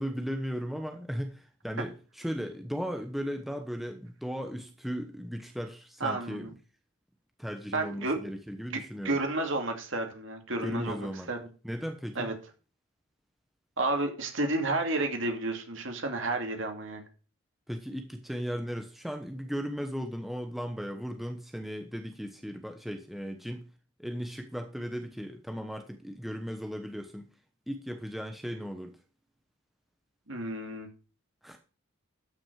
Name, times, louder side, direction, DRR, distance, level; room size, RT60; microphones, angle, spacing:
voice 1, 0.0-6.5 7.4-9.2 10.6-11.3 11.6-12.3 17.7-23.6 24.0-27.3 27.7-28.9 31.4-31.6, equal, ahead, 5 dB, 1.0 m, -36 dB
voice 2, 6.0-6.5 7.7-8.2 8.7-11.4 12.1-12.3 13.8-17.0 30.3-30.9, right 2 dB, 60° right, 4 dB, 2.6 m, -31 dB
13.0 x 6.3 x 4.7 m, 0.36 s
head